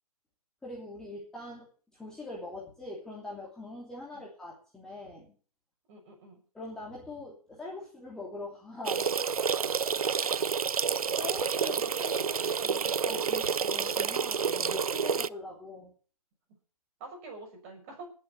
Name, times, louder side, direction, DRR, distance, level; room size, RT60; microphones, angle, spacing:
voice 1, 0.6-5.3 6.5-9.1 11.2-11.8 13.0-15.9, left 2 dB, 5° left, -5 dB, 2.9 m, -42 dB
voice 2, 5.9-6.4 10.2-10.4 11.6-13.5 17.0-18.1, right 3 dB, 25° right, 3 dB, 6.1 m, -46 dB
sound 1, 8.8-15.3, right 6 dB, 65° right, 0.7 m, -29 dB
18.5 x 7.7 x 6.9 m, 0.41 s
figure-of-eight pair, 155°, 20 cm